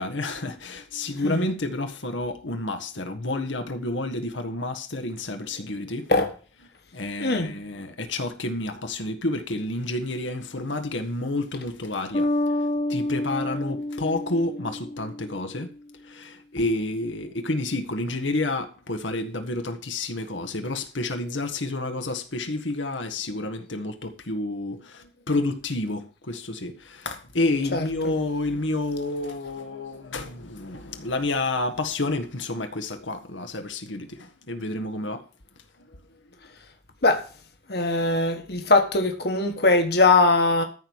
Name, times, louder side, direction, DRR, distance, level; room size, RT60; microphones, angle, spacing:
voice 1, 0.0-6.1 6.9-12.3 12.9-15.7 16.0-35.2 35.8-35.9, left 2 dB, 90° left, 1.6 m, -29 dB
voice 2, 7.2-7.5 27.7-28.1 37.0-37.2 37.7-40.6, left 3 dB, 55° left, 1.4 m, -21 dB
Bass guitar, 12.1-15.7, left 1 dB, 40° left, 0.6 m, -28 dB
14.0 x 4.7 x 7.3 m
head